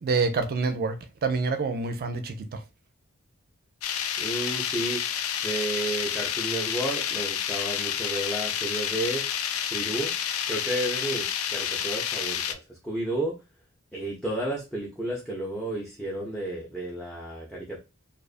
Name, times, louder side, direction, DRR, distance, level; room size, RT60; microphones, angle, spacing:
voice 1, 0.0-2.6, right 4 dB, 45° right, 0.4 m, -27 dB
sound 1, 3.8-12.5, left 9 dB, 75° left, 0.3 m, -29 dB
voice 2, 4.2-5.0 5.4-9.2 9.7-10.1 10.5-13.4 13.9-17.8, right 1 dB, 5° left, 0.5 m, -32 dB
2.4 x 2.4 x 2.4 m
head